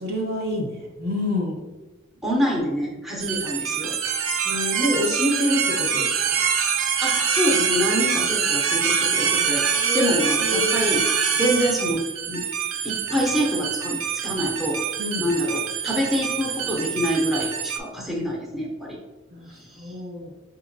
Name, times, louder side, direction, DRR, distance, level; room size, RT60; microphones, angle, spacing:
voice 1, 0.0-1.6 4.4-6.4 9.8-10.1 10.4-10.7 15.0-15.3 19.3-20.3, left 1 dB, 50° right, 0 dB, 1.1 m, -27 dB
voice 2, 2.2-3.9 6.6-6.7 7.0-9.7 9.9-11.1 11.3-12.4 12.8-14.8 15.2-19.0 19.5-19.9, equal, ahead, -4 dB, 0.5 m, -26 dB
sound 1, 3.2-17.8, right 7 dB, 90° right, 0.4 m, -25 dB
5.6 x 2.8 x 2.6 m, 1.2 s
head